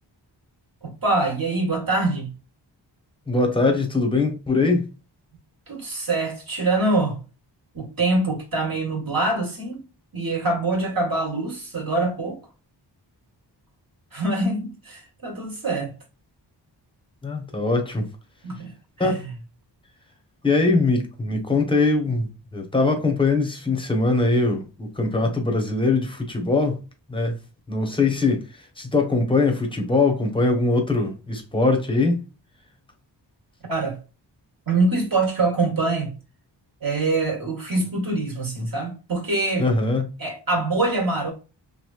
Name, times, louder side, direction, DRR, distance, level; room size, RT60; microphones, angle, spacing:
voice 1, 0.8-2.3 5.7-7.2 7.7-9.8 10.1-12.4 14.1-15.9 18.4-18.7 19.0-19.3 33.7-34.0 34.7-36.1 36.8-39.7 40.2-41.3, right 2 dB, 50° right, 1.3 m, -24 dB
voice 2, 3.3-4.9 17.2-18.1 19.0-19.2 20.4-26.8 27.1-27.4 27.7-28.5 28.8-32.2 39.6-40.1, left 3 dB, 10° left, 0.9 m, -22 dB
3.1 x 2.6 x 2.3 m
wide cardioid pair, 90°, 44 cm